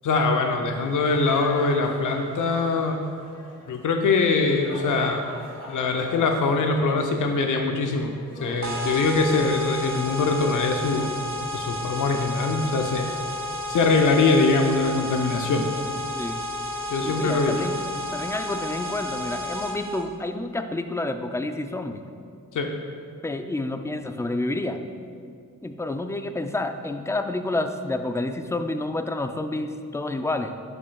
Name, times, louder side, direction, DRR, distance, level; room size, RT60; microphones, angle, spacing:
voice 1, 0.0-3.0 3.7-5.2 5.7-11.1 11.5-13.1 13.7-15.7 16.9-17.6 22.5-22.7, left 3 dB, 70° left, 4 dB, 0.6 m, -23 dB
sound 1, 0.5-9.6, left 1 dB, 50° left, 1.7 m, -44 dB
sound 2, 8.6-20.0, left 1 dB, 60° right, 0.9 m, -32 dB
voice 2, 17.0-17.8 18.1-22.0 23.2-24.8 25.6-30.5, left 2 dB, 10° left, 7 dB, 0.3 m, -29 dB
11.0 x 5.2 x 2.3 m, 2.2 s
cardioid pair, 85°, 32 cm